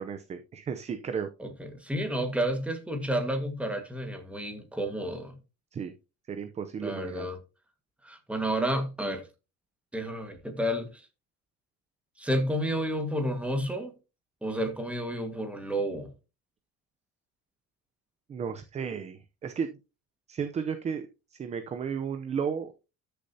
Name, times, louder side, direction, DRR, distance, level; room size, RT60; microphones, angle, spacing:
voice 1, 0.0-1.3 5.7-5.9 6.3-7.3 18.3-19.7 20.3-22.7, right 6 dB, 25° right, 0.7 m, -34 dB
voice 2, 1.4-5.4 6.8-7.4 8.0-9.3 9.9-11.1 12.2-13.9 14.4-16.1, equal, 5° right, 1.6 m, -31 dB
13.0 x 6.8 x 2.8 m
cardioid pair, 165°, 29 cm